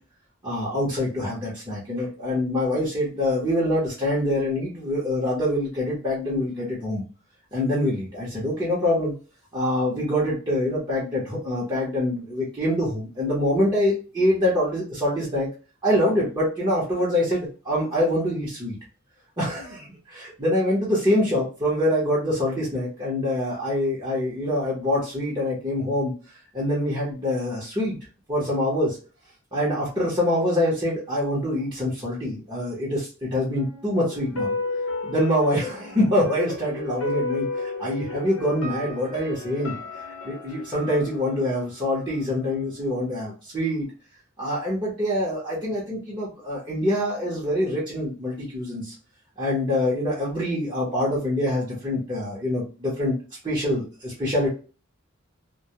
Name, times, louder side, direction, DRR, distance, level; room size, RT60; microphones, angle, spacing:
voice 1, 0.4-7.0 7.5-9.1 9.5-15.5 15.8-18.8 19.4-26.1 26.5-28.0 28.3-29.0 29.5-34.5 35.0-39.8 40.2-43.9 44.4-48.9 49.4-53.1 53.4-54.5, left 1 dB, 20° right, -8 dB, 0.8 m, -25 dB
sound 1, 33.6-42.5 42.9-43.0, left 3 dB, 75° left, 0.7 m, -33 dB
2.2 x 2.2 x 2.8 m, 0.35 s
head